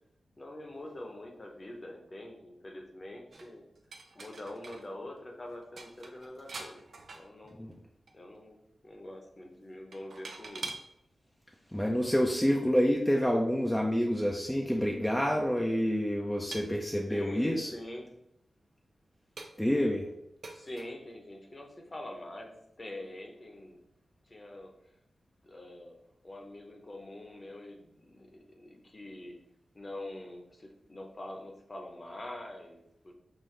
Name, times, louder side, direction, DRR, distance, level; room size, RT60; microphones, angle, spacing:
voice 1, 0.4-3.6 4.1-6.8 7.1-7.7 8.1-8.6 8.8-10.7 17.1-18.1 20.5-23.8 24.2-24.7 25.4-26.0 26.2-29.4 29.7-33.1, left 1 dB, 30° left, 2 dB, 0.8 m, -45 dB
sound 1, 3.3-4.9 5.2-5.3 5.6-7.8 8.1-8.4 9.9-10.9 11.8-11.9 14.3-14.4 14.7-14.8 15.6-15.8 16.5-17.4 18.0-18.1 18.7-18.8 19.4-19.8 20.4-20.9, right 3 dB, 65° right, 0.5 m, -45 dB
voice 2, 11.7-17.7 19.6-20.1, equal, 5° left, -1 dB, 0.5 m, -28 dB
5.5 x 2.6 x 3.2 m, 0.78 s
wide cardioid pair, 110°, 0 cm